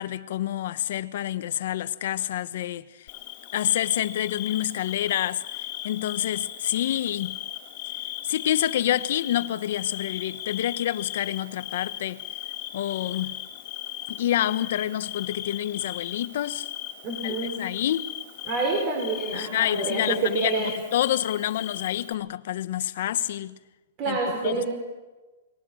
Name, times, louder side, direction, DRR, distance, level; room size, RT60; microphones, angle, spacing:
voice 1, 0.0-3.1 3.5-5.4 5.8-7.4 8.2-12.2 12.7-13.4 14.1-16.7 17.2-18.1 19.3-23.5 24.1-24.2 24.4-24.7, left 12 dB, 60° left, 1.2 m, -28 dB
Bird / Cricket, 3.1-22.1, left 13 dB, 40° left, 3.6 m, -37 dB
voice 2, 17.0-17.8 18.4-20.8 24.0-24.7, right 3 dB, 35° right, 4.9 m, -28 dB
29.0 x 21.0 x 6.5 m
hypercardioid pair, 155°, 0 cm